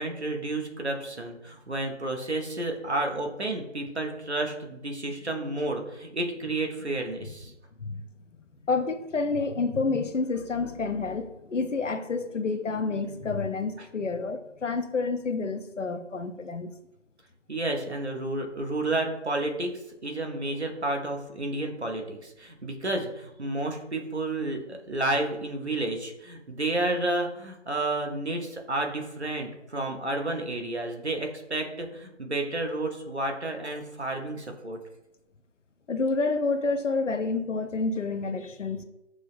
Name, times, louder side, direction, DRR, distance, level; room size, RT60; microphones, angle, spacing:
voice 1, 0.0-7.5 17.5-19.7 20.0-34.8, right 2 dB, 60° right, 0.7 m, -31 dB
voice 2, 8.6-16.7 35.9-38.8, left 4 dB, 80° left, 0.5 m, -29 dB
6.1 x 2.1 x 2.5 m
figure-of-eight pair, 180°, 37 cm